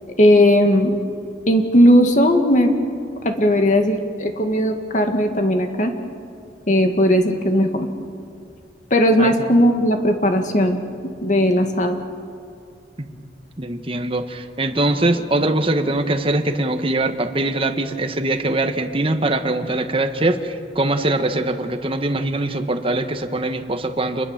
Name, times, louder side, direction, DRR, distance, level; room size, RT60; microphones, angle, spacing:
voice 1, 0.2-0.9 1.5-2.7 3.2-5.9 6.7-7.9 8.9-10.8 11.2-12.0, equal, 45° left, 5 dB, 2.0 m, -17 dB
voice 2, 9.2-9.5 13.0-13.2 13.6-24.2, right 2 dB, 30° right, 7 dB, 1.3 m, -22 dB
28.5 x 21.5 x 7.4 m, 2.4 s
head